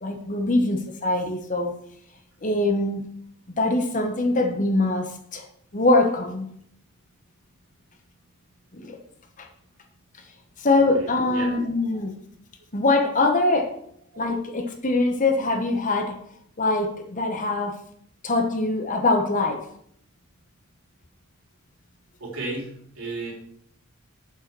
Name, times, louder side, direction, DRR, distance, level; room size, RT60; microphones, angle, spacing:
voice 1, 0.0-1.7 2.4-3.0 3.6-5.4 5.7-6.5 8.7-9.0 9.4-9.5 10.6-12.1 12.7-13.7 14.2-16.1 16.6-17.8 18.2-19.6, left 2 dB, 35° left, 4 dB, 1.1 m, -23 dB
voice 2, 10.7-11.5 22.2-23.3, right 2 dB, 65° right, -3 dB, 3.7 m, -34 dB
8.0 x 5.6 x 6.1 m, 0.68 s
head